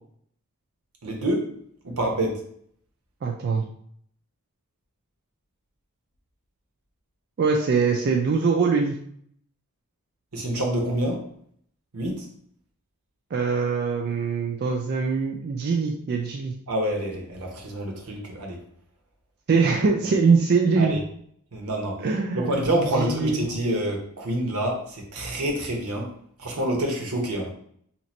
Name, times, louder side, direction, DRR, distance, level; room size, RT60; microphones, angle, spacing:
voice 1, 1.0-1.5 1.8-2.4 10.3-11.2 11.9-12.3 16.7-18.6 20.8-21.0 21.5-22.0 22.3-26.1 26.4-27.5, right 1 dB, 80° right, 0 dB, 0.9 m, -27 dB
voice 2, 3.2-3.6 7.4-9.0 13.3-16.5 19.5-21.0 22.0-22.5 22.8-23.4, right 4 dB, 50° right, 1 dB, 0.4 m, -23 dB
2.9 x 2.4 x 4.1 m, 0.65 s
head